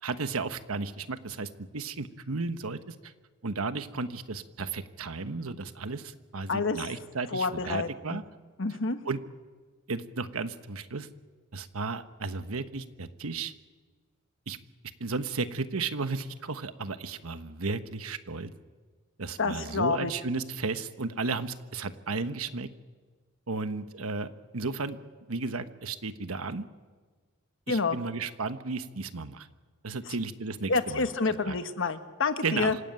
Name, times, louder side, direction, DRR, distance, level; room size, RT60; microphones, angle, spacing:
voice 1, 0.0-3.1 3.4-8.2 9.0-9.2 9.9-11.1 11.5-13.5 14.5-14.6 15.0-18.5 19.2-22.7 23.5-25.0 25.3-26.7 27.7-29.5 29.8-31.1 31.4-31.6 32.4-32.8, right 4 dB, 80° right, 10 dB, 1.2 m, -34 dB
voice 2, 6.5-6.9 7.3-8.2 8.6-9.0 19.4-20.1 27.7-28.0 30.1-30.2 30.7-32.8, left 4 dB, 65° left, 8 dB, 1.4 m, -28 dB
26.5 x 15.5 x 9.0 m, 1.4 s
head